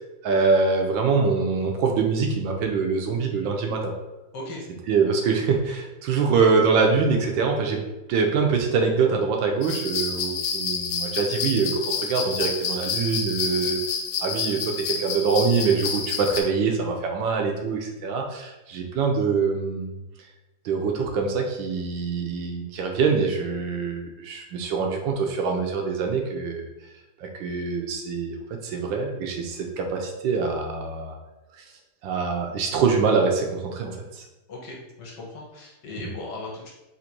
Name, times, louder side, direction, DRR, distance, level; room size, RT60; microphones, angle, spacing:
voice 1, 0.2-3.9 4.9-13.8 14.2-20.0 20.6-26.7 27.2-28.3 28.6-31.1 32.0-34.2 36.0-36.1, right 5 dB, 85° right, 2 dB, 1.4 m, -24 dB
sound 1, 9.6-16.4, left 6 dB, 85° left, 1.4 m, -29 dB
voice 2, 34.5-36.7, left 2 dB, 70° left, -3 dB, 1.4 m, -37 dB
4.0 x 2.5 x 4.3 m, 0.98 s
omnidirectional pair, 2.1 m